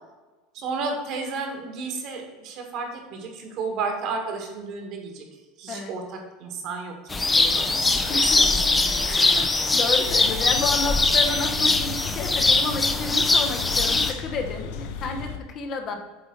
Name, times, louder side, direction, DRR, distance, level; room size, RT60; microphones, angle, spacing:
voice 1, 0.5-5.2 5.6-9.6, right 4 dB, 55° right, 3 dB, 1.5 m, -33 dB
sound 1, 7.1-14.1, left 3 dB, 15° left, 0.5 m, -21 dB
voice 2, 8.1-8.6 9.0-15.9, left 3 dB, 45° left, 5 dB, 0.9 m, -31 dB
sound 2, 10.1-15.4, left 6 dB, 70° left, 0.7 m, -35 dB
8.0 x 3.4 x 4.5 m, 1.2 s
supercardioid pair, 120°, 0 cm